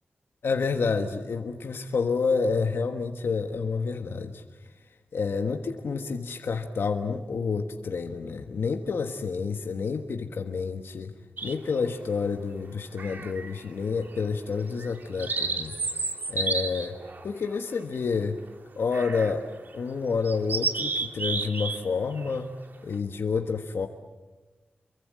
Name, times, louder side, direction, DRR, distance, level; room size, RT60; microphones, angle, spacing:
voice 1, 0.4-4.4 5.1-11.1 11.4-15.7 16.3-16.9 17.2-18.4 18.8-19.5 19.7-22.5 22.8-23.9, left 5 dB, 85° left, 5 dB, 1.4 m, -29 dB
sound 1, 11.4-11.9 13.0-13.7 14.0-14.2 14.8-18.2 18.9-19.4 19.7-19.8 20.2-21.8 22.1-22.4, right 3 dB, 55° right, 2.6 m, -31 dB
28.0 x 23.5 x 7.7 m, 1.2 s
wide cardioid pair, 125°, 4 cm